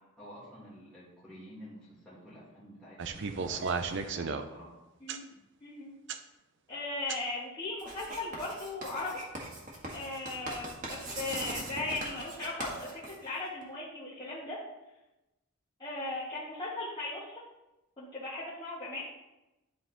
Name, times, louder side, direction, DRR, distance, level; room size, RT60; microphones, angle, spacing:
voice 1, 0.2-4.8, equal, 5° left, -9 dB, 2.1 m, -50 dB
sound 1, 3.0-4.5 5.1-5.2 6.1-6.2 7.1-7.2, right 5 dB, 60° right, 0.5 m, -33 dB
voice 2, 5.6-5.9 6.7-9.1 9.9-12.9 13.2-14.6 15.8-17.4 18.0-19.0, left 2 dB, 20° left, -10 dB, 1.5 m, -37 dB
Writing, 7.8-13.6, right 2 dB, 40° right, 1.6 m, -40 dB
11.0 x 3.7 x 3.9 m, 0.98 s
head